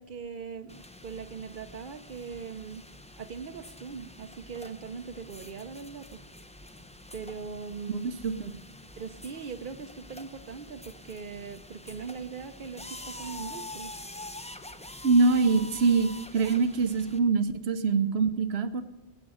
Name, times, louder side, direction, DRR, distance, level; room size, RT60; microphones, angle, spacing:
voice 1, 0.0-2.8 3.2-6.2 7.1-8.1 9.0-13.9, right 5 dB, 60° right, 10 dB, 0.8 m, -40 dB
sound 1, 0.7-17.2, left 1 dB, 10° left, 0.4 m, -46 dB
voice 2, 7.9-8.5 15.0-18.8, right 4 dB, 85° right, 11 dB, 1.1 m, -24 dB
17.0 x 7.5 x 6.2 m, 1.0 s
omnidirectional pair, 1.0 m